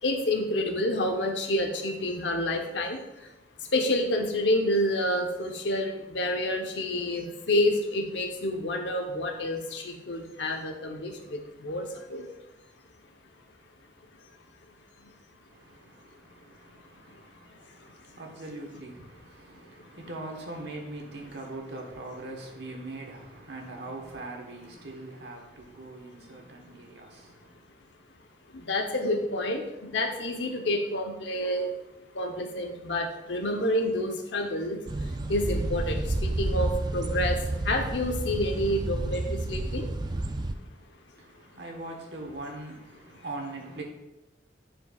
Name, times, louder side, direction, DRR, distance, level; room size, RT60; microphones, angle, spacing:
voice 1, 0.0-3.3 3.7-12.3 15.0-15.1 17.1-17.2 17.8-17.9 19.8-19.9 28.5-31.8 32.1-39.9, left 1 dB, 80° left, 0.9 m, -29 dB
voice 2, 15.5-27.6 41.1-43.8, right 2 dB, 65° right, 1.3 m, -42 dB
sound 1, 34.9-40.5, right 1 dB, 25° right, 0.4 m, -30 dB
10.5 x 4.6 x 2.4 m
head